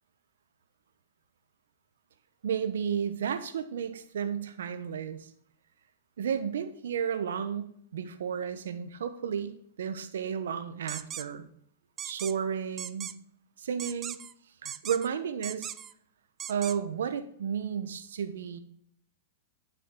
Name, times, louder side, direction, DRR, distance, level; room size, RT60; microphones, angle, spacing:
voice 1, 2.4-5.3 6.2-11.5 12.0-13.1 13.6-14.2 14.6-15.7 16.5-18.6, right 7 dB, 80° right, 10 dB, 1.1 m, -33 dB
sound 1, 10.9-11.2 12.0-12.3 12.8-13.1 13.8-14.3 14.6-15.1 15.4-15.9 16.4-16.8, right 9 dB, 25° right, 0.4 m, -38 dB
11.0 x 6.2 x 3.9 m, 0.63 s
hypercardioid pair, 125°, 0 cm